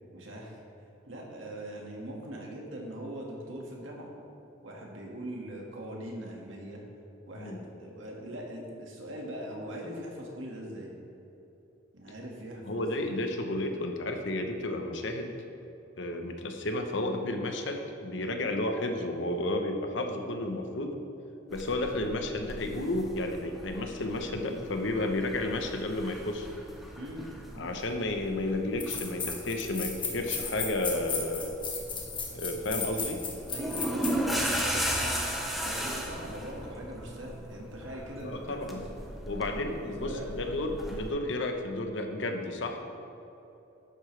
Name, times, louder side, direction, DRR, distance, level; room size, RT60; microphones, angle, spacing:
voice 1, 0.1-0.6 1.1-4.1 4.6-6.8 7.3-10.9 11.9-12.9 27.0-27.8 33.5-35.2 35.6-38.9 39.6-40.3, right 1 dB, 80° right, -1 dB, 1.9 m, -41 dB
voice 2, 12.6-15.3 16.0-21.0 21.5-26.5 27.6-31.6 32.3-33.2 38.2-38.8 39.3-42.8, left 1 dB, 70° left, 4 dB, 0.9 m, -32 dB
sound 1, 21.5-41.1, equal, ahead, 0.9 m, -37 dB
sound 2, 28.2-28.3 28.8-34.7, left 5 dB, 25° left, 1.3 m, -35 dB
11.5 x 8.6 x 3.3 m, 3.0 s
head